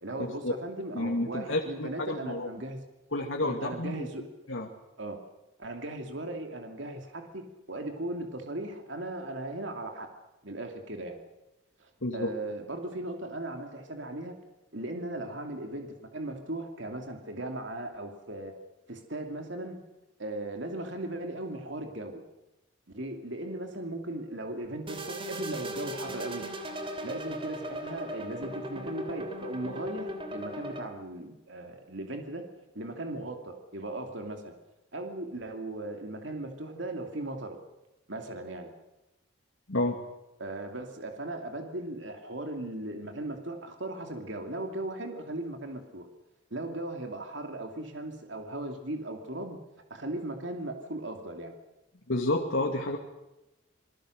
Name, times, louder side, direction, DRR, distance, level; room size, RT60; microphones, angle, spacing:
voice 1, 0.0-2.8 3.4-4.2 5.0-5.2 5.6-10.1 10.4-11.2 11.8-14.4 14.7-18.5 18.9-19.8 20.2-22.2 22.9-26.4 27.0-32.5 32.7-34.5 34.9-37.6 38.1-38.7 40.4-46.1 46.5-49.6 49.9-51.5, right 1 dB, 65° right, 4 dB, 2.7 m, -37 dB
voice 2, 0.9-2.5 3.1-4.1 4.5-4.7 12.0-12.3 39.7-40.0 52.1-53.0, left 2 dB, 75° left, 1 dB, 2.3 m, -30 dB
sound 1, 24.9-30.8, right 1 dB, 25° right, 3.0 m, -38 dB
27.5 x 21.0 x 6.6 m, 0.98 s
head